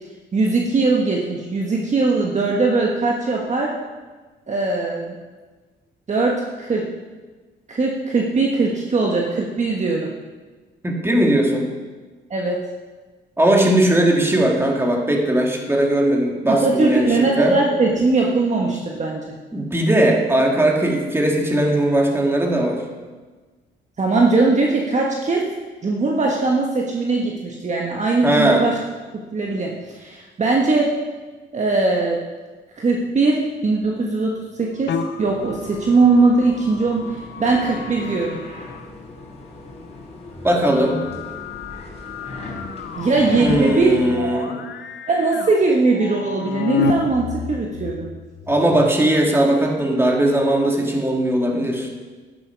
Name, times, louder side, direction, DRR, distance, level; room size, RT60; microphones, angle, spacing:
voice 1, 0.3-3.7 4.5-5.2 6.1-6.9 7.7-10.1 12.3-12.6 16.5-19.3 24.0-25.5 25.8-28.8 29.3-30.9 31.5-32.2 32.8-38.4 43.0-44.5 45.1-48.1, right 3 dB, 35° right, -1 dB, 1.5 m, -20 dB
voice 2, 10.8-11.7 13.4-17.1 17.4-17.6 19.5-22.8 28.2-28.6 40.4-41.0 43.4-44.6 48.5-51.9, right 1 dB, 10° right, 0 dB, 2.4 m, -18 dB
sound 1, 34.8-38.9 40.5-48.9, left 5 dB, 65° left, 1.0 m, -31 dB
sound 2, 35.2-43.9, left 2 dB, 35° left, 3.6 m, -38 dB
11.0 x 11.0 x 4.7 m, 1.3 s
cardioid pair, 90°, 20 cm